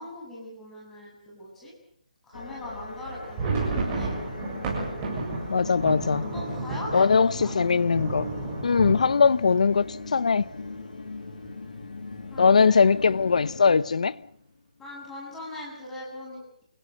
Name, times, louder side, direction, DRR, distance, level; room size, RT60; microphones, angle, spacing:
voice 1, 0.0-1.7 2.2-4.1 6.2-7.5 12.3-12.9 14.8-16.6, left 1 dB, 5° left, 7.8 m, -40 dB
sound 1, 2.3-14.5, left 4 dB, 80° left, 2.6 m, -40 dB
sound 2, 3.0-10.7 11.1-11.2 11.4-11.7 12.2-12.7, right 3 dB, 15° right, 7.6 m, -32 dB
voice 2, 5.5-6.3 6.9-8.3 8.6-10.5 12.4-14.1, left 5 dB, 60° left, 1.0 m, -21 dB
29.0 x 17.0 x 8.0 m
hypercardioid pair, 175°, 4 cm